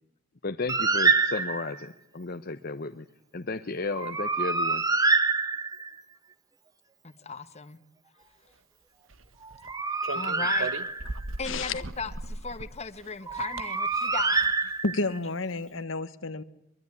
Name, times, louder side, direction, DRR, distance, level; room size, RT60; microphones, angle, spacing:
voice 1, 0.4-3.0 3.3-4.8, left 3 dB, 50° left, 0.9 m, -33 dB
Bird, 0.7-1.9 3.9-6.0 9.4-11.3 13.3-15.2, right 4 dB, 20° right, 1.2 m, -26 dB
voice 2, 7.0-7.8 10.1-10.7 11.4-14.7, left 4 dB, 35° left, 1.3 m, -37 dB
sound 1, 9.1-9.7 10.0-14.7, right 2 dB, 90° right, 1.5 m, -39 dB
voice 3, 11.4-11.8 14.8-16.4, left 3 dB, 80° left, 1.4 m, -30 dB
23.0 x 23.0 x 9.7 m
head